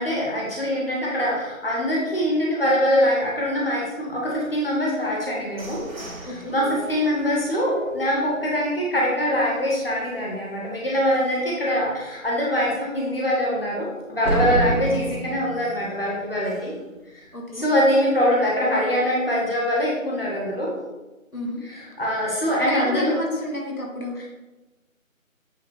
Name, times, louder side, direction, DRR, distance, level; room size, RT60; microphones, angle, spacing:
voice 1, 0.0-5.9 6.2-16.7 17.5-20.7 21.6-23.2 24.2-24.3, equal, 45° left, -4 dB, 1.6 m, -23 dB
sound 1, 5.0-8.8 9.3-9.4 9.8-10.2 10.6-10.7 11.1-11.2 14.2-16.9, right 2 dB, 75° right, 1.9 m, -31 dB
voice 2, 14.6-15.0 17.3-17.7 21.3-21.6 22.5-24.2, left 1 dB, 90° left, -1 dB, 2.1 m, -31 dB
9.0 x 3.7 x 3.5 m, 1.1 s
figure-of-eight pair, 175°, 41 cm